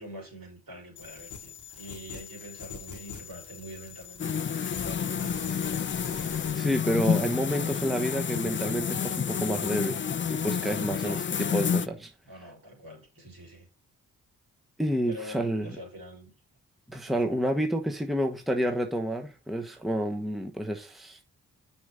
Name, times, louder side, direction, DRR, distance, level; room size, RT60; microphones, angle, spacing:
voice 1, 0.0-6.2 11.0-11.8 12.2-13.7 15.1-16.3 17.1-17.2, equal, 60° right, 4.3 m, -45 dB
sound 1, 1.0-6.5, left 6 dB, 50° left, 1.2 m, -43 dB
sound 2, 4.2-11.9, left 7 dB, 30° left, 0.5 m, -29 dB
voice 2, 6.2-10.0 10.3-12.1 14.8-15.7 16.9-21.2, equal, ahead, 1.2 m, -29 dB
6.1 x 4.8 x 5.4 m
supercardioid pair, 40°, 39 cm